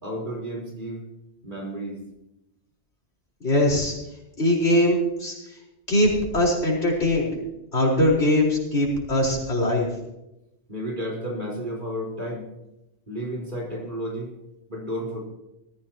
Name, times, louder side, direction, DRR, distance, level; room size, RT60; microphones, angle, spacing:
voice 1, 0.0-1.1 1.4-2.0 10.7-12.5 13.1-14.3 14.7-15.2, equal, 50° right, -2 dB, 4.4 m, -32 dB
voice 2, 3.4-3.9 4.4-5.3 5.9-7.3 7.7-9.9, left 1 dB, 85° left, -3 dB, 4.9 m, -21 dB
19.5 x 15.0 x 3.0 m, 0.89 s
omnidirectional pair, 1.1 m